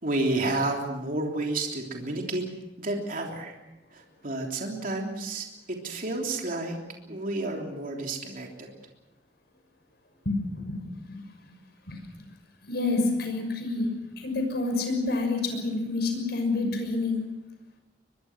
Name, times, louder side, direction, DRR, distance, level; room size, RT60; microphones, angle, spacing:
voice 1, 0.0-2.4 2.8-3.6 3.9-6.8 7.1-8.7, right 2 dB, 50° right, 1 dB, 3.3 m, -30 dB
voice 2, 10.2-11.2 11.9-12.0 12.6-17.2, left 3 dB, 65° left, 5 dB, 6.2 m, -28 dB
23.0 x 23.0 x 6.2 m, 0.98 s
head